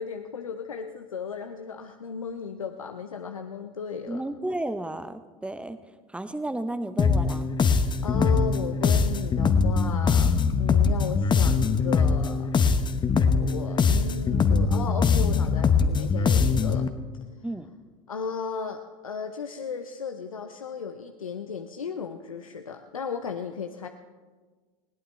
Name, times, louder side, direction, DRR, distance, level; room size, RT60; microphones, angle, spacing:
voice 1, 0.0-4.2 8.0-12.5 13.4-16.9 18.1-23.9, left 5 dB, 90° left, 6 dB, 0.7 m, -35 dB
voice 2, 4.1-5.8 6.1-7.4 17.4-17.7, right 1 dB, 5° right, 11 dB, 0.9 m, -32 dB
sound 1, 7.0-16.9, left 5 dB, 25° left, 1.0 m, -22 dB
20.5 x 17.0 x 3.3 m, 1.4 s
hypercardioid pair, 80°, 17 cm